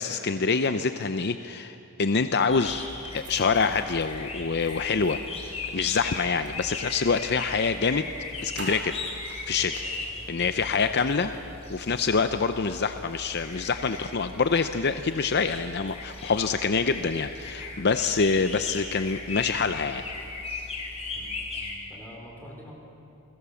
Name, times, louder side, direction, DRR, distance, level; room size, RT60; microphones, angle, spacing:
voice 1, 0.0-2.9 3.1-8.1 8.4-9.0 9.5-9.7 10.3-11.3 11.7-20.0, left 5 dB, 50° left, 9 dB, 0.6 m, -26 dB
sound 1, 2.5-21.7, left 3 dB, 30° left, 3.9 m, -38 dB
sound 2, 3.0-7.1 7.8-7.9 8.2-10.2, right 3 dB, 50° right, 3.9 m, -47 dB
voice 2, 9.6-10.8 11.2-11.4 21.1-21.4 21.9-22.7, equal, 10° left, -2 dB, 4.9 m, -47 dB
29.5 x 22.0 x 7.1 m, 2.8 s
head